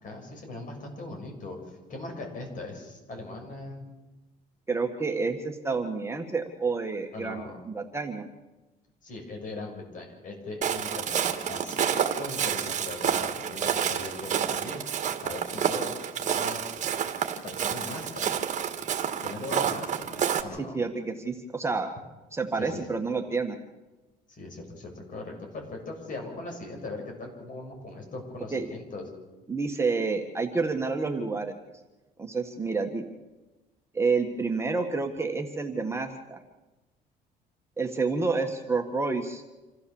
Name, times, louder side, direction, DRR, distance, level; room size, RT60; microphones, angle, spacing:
voice 1, 0.0-3.9 7.1-7.6 9.0-14.8 15.2-16.6 17.4-18.3 19.2-20.8 22.5-22.7 24.3-29.0, left 2 dB, 50° left, 2 dB, 6.7 m, -39 dB
voice 2, 4.7-8.2 20.6-21.9 22.3-23.6 28.5-28.7 29.5-31.6 32.2-33.0 33.9-36.4 37.8-39.4, right 4 dB, 15° right, 3 dB, 1.7 m, -29 dB
Walk footsteps, 10.6-20.4, right 8 dB, 45° right, 1.8 m, -29 dB
27.0 x 14.5 x 7.2 m, 1.1 s
cardioid pair, 110°, 17 cm